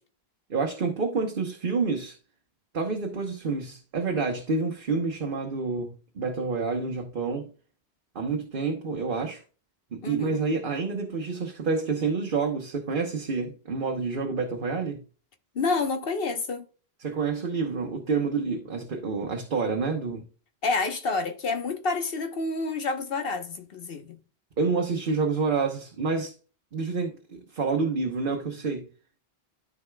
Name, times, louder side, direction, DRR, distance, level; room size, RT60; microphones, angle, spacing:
voice 1, 0.5-2.2 2.7-7.5 8.1-9.4 9.9-15.0 17.0-20.2 24.6-26.3 26.7-28.9, right 4 dB, 60° right, 1.2 m, -28 dB
voice 2, 10.0-10.4 15.5-16.6 20.6-24.2, left 3 dB, 65° left, 1.3 m, -29 dB
13.0 x 4.8 x 2.3 m
omnidirectional pair, 1.1 m